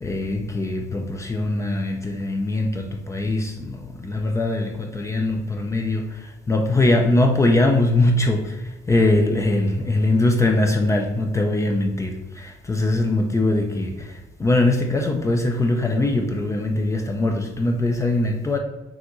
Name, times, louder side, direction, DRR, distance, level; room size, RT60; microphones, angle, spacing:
voice 1, 0.0-18.6, left 2 dB, 15° left, 3 dB, 0.5 m, -22 dB
6.1 x 2.5 x 3.0 m, 1.1 s
cardioid pair, 110°, 17 cm